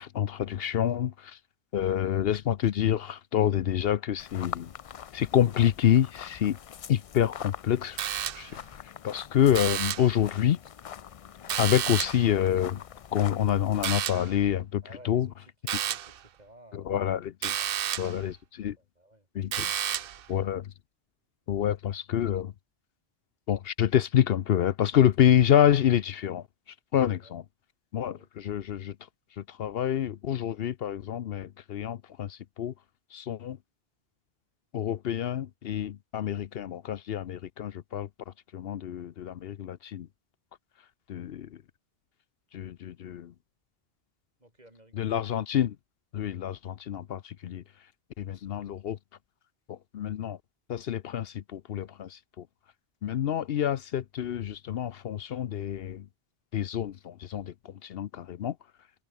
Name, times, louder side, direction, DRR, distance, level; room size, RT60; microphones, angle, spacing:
voice 1, 0.0-1.4 1.7-4.7 5.1-6.6 6.9-8.0 8.3-8.6 8.8-10.6 11.6-12.8 13.1-15.3 16.7-17.5 18.0-18.8 19.3-19.6 20.3-20.7 21.5-22.5 23.5-26.5 26.9-27.4 27.9-29.0 29.4-32.7 33.1-33.6 34.7-40.1 41.1-41.6 42.5-43.3 44.9-45.8 46.1-47.6 48.2-49.0 49.7-50.4 50.7-52.5 53.0-56.1 56.5-58.6, left 10 dB, 70° left, 0.9 m, -27 dB
sound 1, 4.2-14.0, left 8 dB, 50° left, 0.4 m, -44 dB
sound 2, 8.0-8.6 9.5-10.2 11.5-12.3 13.8-14.4 15.7-16.2 17.4-18.2 19.5-20.2, right 10 dB, 65° right, 0.8 m, -31 dB
voice 2, 14.8-17.1 18.6-19.3 19.5-20.5 27.2-27.3 28.0-28.3 44.4-45.2 46.1-46.4, right 1 dB, 40° right, 6.1 m, -56 dB
omnidirectional pair, 1.0 m